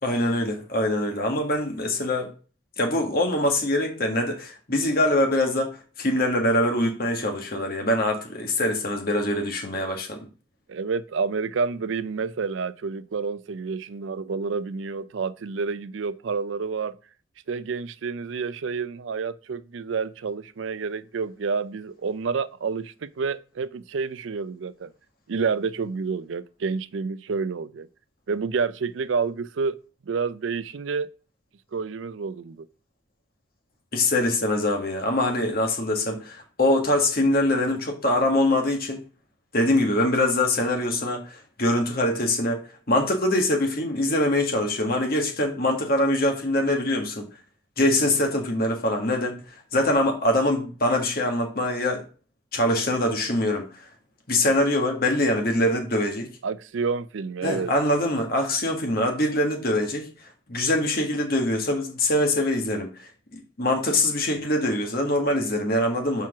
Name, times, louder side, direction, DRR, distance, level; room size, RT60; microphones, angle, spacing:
voice 1, 0.0-2.3 2.8-10.2 33.9-39.0 39.5-47.3 47.8-49.4 49.7-52.0 52.5-53.7 54.3-56.3 57.4-60.1 60.5-66.3, left 1 dB, 50° left, 1.9 m, -23 dB
voice 2, 10.7-17.0 17.5-24.9 25.3-27.9 28.3-29.8 30.1-31.1 31.7-32.7 56.4-57.7, right 5 dB, 85° right, 0.5 m, -29 dB
6.0 x 4.5 x 6.0 m
head